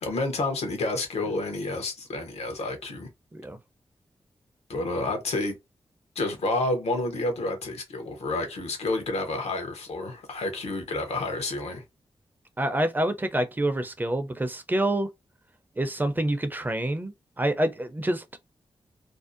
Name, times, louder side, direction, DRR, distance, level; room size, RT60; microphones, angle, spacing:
voice 1, 0.0-3.1 4.7-5.5 6.2-11.8, left 2 dB, 80° left, 0.7 m, -29 dB
voice 2, 12.6-15.1 15.8-18.4, right 1 dB, 15° right, 0.5 m, -27 dB
2.6 x 2.0 x 2.5 m
cardioid pair, 50°, 11 cm